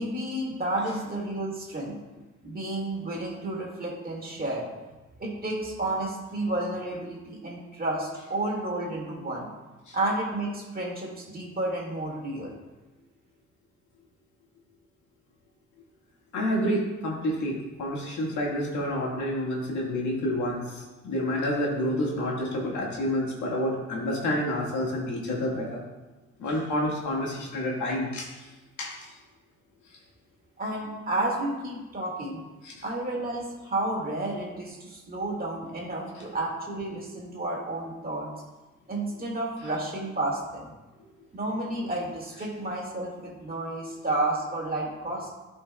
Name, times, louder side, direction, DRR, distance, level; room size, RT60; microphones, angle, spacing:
voice 1, 0.0-2.0 2.4-4.7 5.2-9.5 9.9-12.5 30.6-32.4 32.8-38.3 38.9-40.7 41.3-45.3, right 2 dB, 30° right, -2 dB, 2.1 m, -31 dB
voice 2, 16.3-25.8 26.4-28.4 28.8-28.9 32.6-32.7, left 1 dB, 75° left, -3 dB, 1.8 m, -29 dB
11.5 x 4.4 x 2.3 m, 1.2 s
cardioid pair, 90°, 30 cm